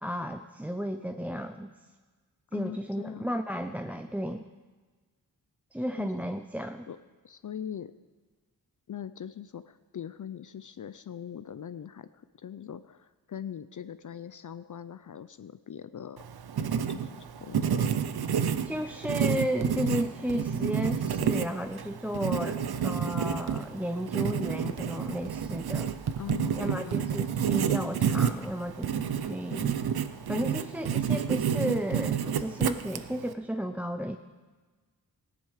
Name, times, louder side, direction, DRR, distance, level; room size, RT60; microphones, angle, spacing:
voice 1, 0.0-1.7 2.5-4.4 5.7-6.9 18.7-25.9 26.6-29.8 30.3-34.2, equal, 5° right, 7 dB, 0.5 m, -33 dB
voice 2, 2.5-3.3 5.9-6.1 6.9-7.0 7.2-7.9 8.9-16.2 16.9-18.1 26.2-27.1, left 9 dB, 55° left, 13 dB, 0.5 m, -41 dB
Writing, 16.2-33.3, right 8 dB, 75° right, 0.7 m, -30 dB
15.5 x 10.5 x 4.9 m, 1.4 s
cardioid pair, 60°, 38 cm